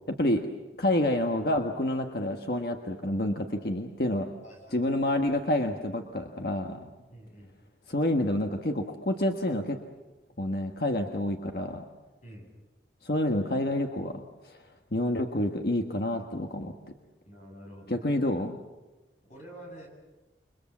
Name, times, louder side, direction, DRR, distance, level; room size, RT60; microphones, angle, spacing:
voice 1, 0.1-0.4 0.8-4.3 4.7-6.9 7.9-9.8 10.4-11.8 13.0-14.6 14.9-16.9 17.9-18.6, left 1 dB, 60° left, 4 dB, 1.4 m, -28 dB
voice 2, 4.4-5.0 7.1-7.6 12.2-12.5 17.3-18.1 19.3-19.9, equal, 40° left, 0 dB, 7.8 m, -48 dB
29.5 x 23.5 x 7.4 m, 1.1 s
head